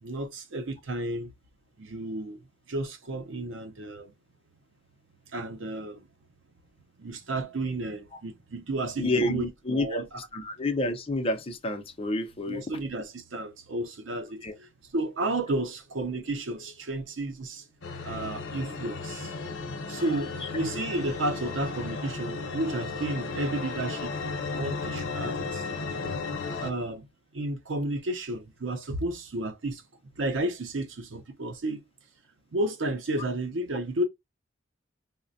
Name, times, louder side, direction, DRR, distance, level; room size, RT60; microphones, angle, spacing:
voice 1, 0.0-1.3 1.8-2.4 2.7-4.1 5.3-6.1 7.0-9.5 9.7-10.1 12.5-17.7 18.0-24.2 24.5-25.7 26.6-27.1 27.3-29.8 30.2-31.8 32.5-34.0, right 1 dB, 80° right, 0.6 m, -32 dB
voice 2, 9.0-10.0 10.3-12.6 14.4-14.5 19.9-20.0 20.5-20.6, left 1 dB, 30° left, 0.6 m, -29 dB
sound 1, 17.8-26.7, left 4 dB, 85° left, 0.7 m, -34 dB
4.1 x 2.1 x 2.6 m
head